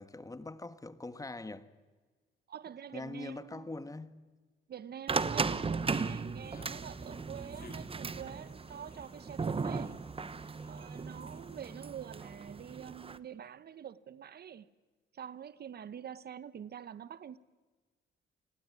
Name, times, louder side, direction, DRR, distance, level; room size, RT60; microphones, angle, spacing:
voice 1, 0.0-1.7 2.9-4.3 11.5-11.6, left 2 dB, 15° left, 1.6 m, -43 dB
voice 2, 2.5-3.7 4.7-10.0 10.7-14.7 15.1-17.4, right 8 dB, 55° right, 1.1 m, -46 dB
sound 1, 5.1-13.2, right 4 dB, 30° right, 1.2 m, -37 dB
sound 2, 6.4-11.6, left 5 dB, 50° left, 5.4 m, -60 dB
30.0 x 19.5 x 9.8 m
cardioid pair, 90°, 20 cm